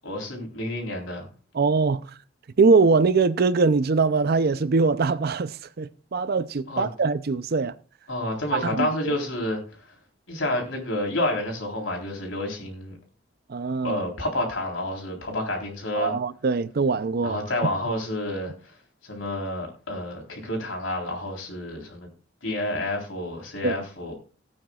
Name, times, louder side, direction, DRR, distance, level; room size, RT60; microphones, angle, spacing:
voice 1, 0.0-1.3 6.7-6.9 8.1-10.0 10.3-13.0 13.8-16.1 17.2-18.8 19.0-22.1 22.4-24.1, left 1 dB, 90° left, 3.8 m, -29 dB
voice 2, 1.5-2.0 2.6-7.8 8.5-9.1 13.5-14.0 15.9-17.4 23.6-23.8, right 4 dB, 55° right, 0.5 m, -22 dB
17.5 x 8.9 x 2.4 m
head